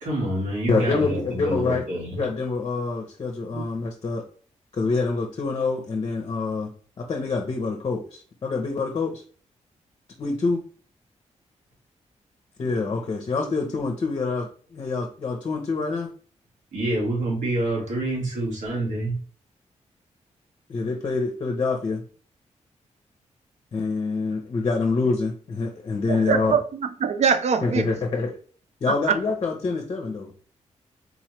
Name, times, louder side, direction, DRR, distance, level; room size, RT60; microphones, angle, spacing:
voice 1, 0.0-2.2 16.7-19.2, right 1 dB, 80° right, 1.8 m, -27 dB
voice 2, 0.7-1.8 2.1-4.2 4.7-6.7 7.0-9.2 10.2-10.6 12.6-16.1 20.7-22.0 23.7-26.5 27.6-28.4 28.8-30.3, left 4 dB, 40° left, 0.6 m, -26 dB
voice 3, 26.1-27.9 28.9-29.2, right 7 dB, 65° right, 0.5 m, -23 dB
3.9 x 3.1 x 2.9 m
wide cardioid pair, 160°, 12 cm